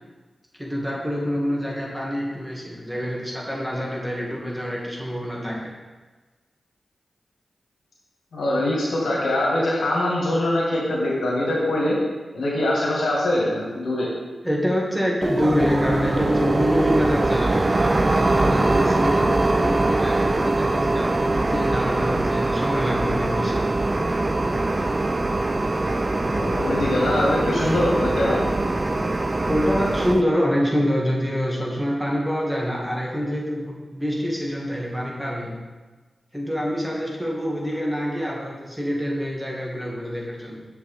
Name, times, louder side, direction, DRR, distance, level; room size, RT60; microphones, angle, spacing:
voice 1, 0.6-5.7 14.4-23.6 29.5-35.6 36.3-40.7, equal, 5° right, -3 dB, 1.9 m, -26 dB
voice 2, 8.3-11.9 12.3-14.1 26.3-28.4, left 1 dB, 85° left, -5 dB, 2.0 m, -23 dB
sound 1, 15.2-30.2, right 2 dB, 40° right, 0.4 m, -22 dB
6.8 x 5.9 x 3.5 m, 1.3 s
cardioid pair, 45°, 0 cm